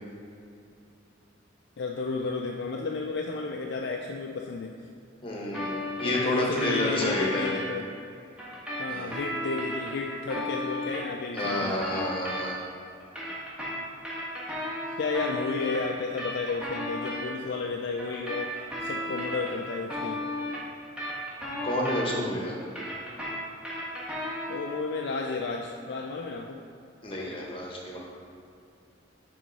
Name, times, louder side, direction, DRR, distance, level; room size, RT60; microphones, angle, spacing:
voice 1, 1.8-4.7 6.0-7.9 8.8-11.7 15.0-18.5 18.8-20.2 24.5-26.6, left 4 dB, 60° left, 1 dB, 0.4 m, -32 dB
voice 2, 5.2-7.5 8.9-9.2 11.3-12.5 21.6-22.5 27.0-28.0, left 1 dB, 30° left, -3 dB, 1.1 m, -29 dB
sound 1, 5.5-7.6 8.4-12.7 13.0-17.2 18.0-22.3 22.6-24.7, left 1 dB, 5° right, 1.3 m, -34 dB
6.0 x 4.7 x 4.1 m, 2.5 s
head